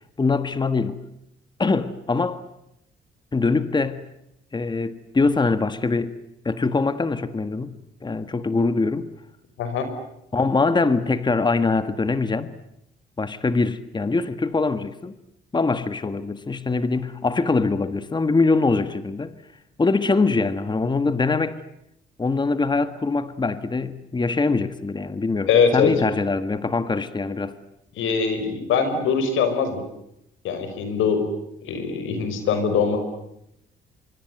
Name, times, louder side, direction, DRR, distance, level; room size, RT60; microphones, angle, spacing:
voice 1, 0.2-1.0 1.6-2.4 3.3-4.1 4.5-6.1 6.4-9.1 10.3-12.5 13.2-15.1 15.5-19.3 19.8-21.6 22.2-27.5, left 3 dB, 20° left, 1.5 m, -23 dB
voice 2, 25.5-25.9 28.0-29.8 30.4-31.2 31.6-33.0, left 6 dB, 85° left, 5.7 m, -22 dB
25.5 x 24.0 x 9.4 m
cardioid pair, 90°, 20 cm